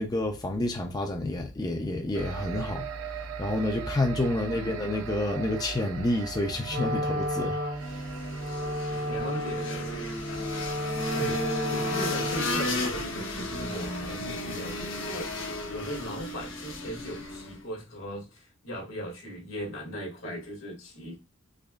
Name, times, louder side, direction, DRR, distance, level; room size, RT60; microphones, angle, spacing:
voice 1, 0.0-3.1 3.4-8.0 11.2-11.3, left 1 dB, 20° left, 0.4 m, -29 dB
sound 1, 2.1-14.0, right 6 dB, 90° right, 0.5 m, -41 dB
voice 2, 4.3-4.7 8.9-10.2 11.1-11.4 11.7-21.2, equal, 90° left, 2.1 m, -38 dB
Wind instrument woodwind instrument, 6.6-12.7, equal, 50° right, 0.7 m, -32 dB
sound 2, 7.8-17.6, left 1 dB, 65° left, 1.0 m, -34 dB
4.9 x 2.4 x 2.3 m
head